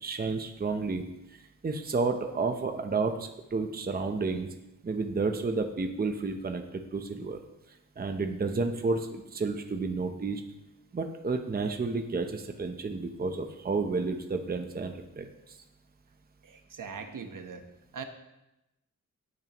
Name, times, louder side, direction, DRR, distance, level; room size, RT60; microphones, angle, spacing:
voice 1, 0.0-4.5 4.8-7.4 8.0-10.4 10.9-15.6, right 4 dB, 30° right, 5 dB, 0.7 m, -31 dB
voice 2, 16.4-17.6 17.9-18.0, right 5 dB, 70° right, 6 dB, 1.1 m, -41 dB
17.5 x 9.2 x 3.0 m, 0.93 s
wide cardioid pair, 175°, 33 cm